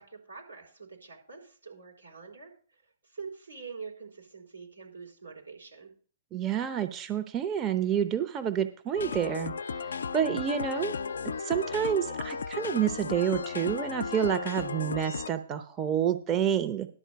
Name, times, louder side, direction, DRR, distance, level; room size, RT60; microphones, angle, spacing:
voice 1, 0.0-5.9, right 5 dB, 85° right, -2 dB, 4.4 m, -45 dB
voice 2, 6.3-9.5 10.1-10.9 11.4-16.9, right 9 dB, 25° right, 8 dB, 0.7 m, -28 dB
sound 1, 9.0-15.3, left 5 dB, 65° left, 0.4 m, -35 dB
11.0 x 4.5 x 8.0 m, 0.42 s
figure-of-eight pair, 110°, 0 cm